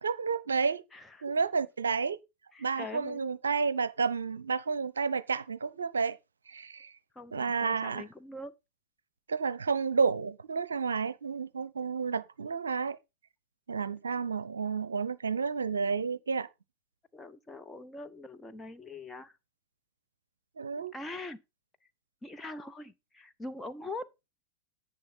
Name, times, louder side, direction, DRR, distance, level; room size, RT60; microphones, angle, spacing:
voice 1, 0.0-0.8 1.2-2.2 2.6-6.2 6.5-6.9 7.3-8.0 9.3-13.0 13.7-16.5 20.6-20.9, right 5 dB, 70° right, 0.6 m, -31 dB
voice 2, 0.9-1.3 2.5-3.2 7.1-8.5 17.1-19.3 20.8-21.4 22.2-24.1, left 2 dB, 10° left, 1.0 m, -43 dB
10.5 x 8.7 x 4.2 m
figure-of-eight pair, 90°, 0 cm